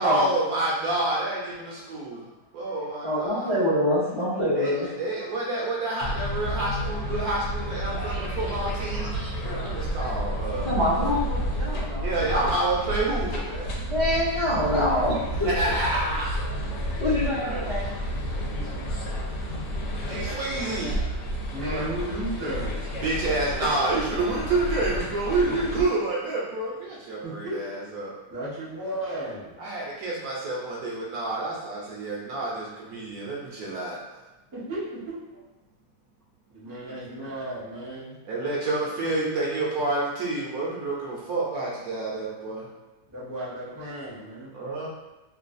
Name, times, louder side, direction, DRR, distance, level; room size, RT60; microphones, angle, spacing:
voice 1, 0.0-2.3 2.5-3.6 3.9-4.0 4.5-9.1 9.4-11.2 12.0-13.8 15.4-16.4 17.4-17.6 20.1-21.2 23.0-28.2 29.6-34.0 36.9-37.0 38.2-42.7 44.5-44.9, right 2 dB, 70° right, -4 dB, 1.0 m, -28 dB
voice 2, 3.0-5.3 7.9-9.6 10.6-12.2 13.9-15.7 17.0-17.9 18.3-18.5 18.8-18.9 19.1-19.3, left 1 dB, 35° left, -10 dB, 0.5 m, -27 dB
sound 1, 6.0-25.8, equal, 80° left, 1.2 m, -31 dB
voice 3, 21.5-22.8 27.2-27.6 28.3-29.6 34.5-35.4 36.5-38.2 43.1-44.5, right 1 dB, 20° right, -9 dB, 0.6 m, -34 dB
3.1 x 2.3 x 2.5 m, 1.1 s
omnidirectional pair, 1.8 m